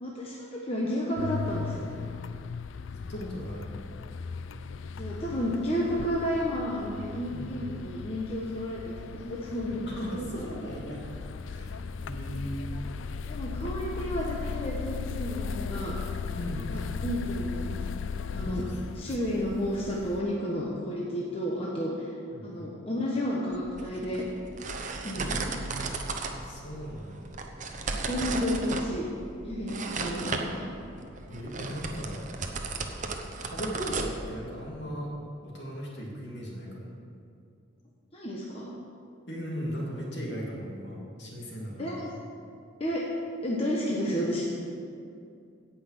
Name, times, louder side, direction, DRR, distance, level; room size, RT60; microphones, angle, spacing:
voice 1, 0.0-1.9 5.0-8.8 9.1-9.9 13.3-16.0 16.7-17.8 18.3-18.7 18.9-22.1 22.4-24.2 25.0-25.4 28.1-29.1 29.4-30.7 38.1-38.7 41.8-42.1 42.8-43.0 43.4-44.4, equal, 30° left, -4 dB, 1.2 m, -31 dB
sound 1, 1.2-20.2, left 5 dB, 75° left, 0.4 m, -37 dB
voice 2, 3.1-3.7 7.3-7.5 9.9-11.0 11.5-12.5 16.3-16.7 18.3-18.7 22.3-22.7 25.1-25.7 26.3-27.3 31.3-32.2 33.4-35.1 35.4-36.9 39.3-41.9, equal, 60° left, -3 dB, 2.7 m, -37 dB
sound 2, 23.5-34.7, right 3 dB, 40° right, 0.8 m, -35 dB
17.0 x 5.7 x 6.0 m, 2.4 s
head